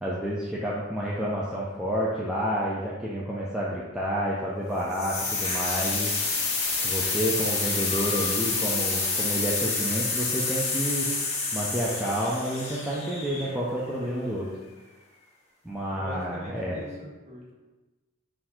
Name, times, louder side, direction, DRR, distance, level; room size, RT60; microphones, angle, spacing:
voice 1, 0.0-6.1 6.8-11.1 11.5-14.5 15.6-16.8, equal, 5° right, -7 dB, 0.4 m, -29 dB
sound 1, 4.9-13.8, left 3 dB, 30° left, 0.8 m, -28 dB
voice 2, 15.9-17.5, left 1 dB, 30° right, -5 dB, 1.0 m, -42 dB
4.0 x 2.6 x 4.3 m, 1.2 s
head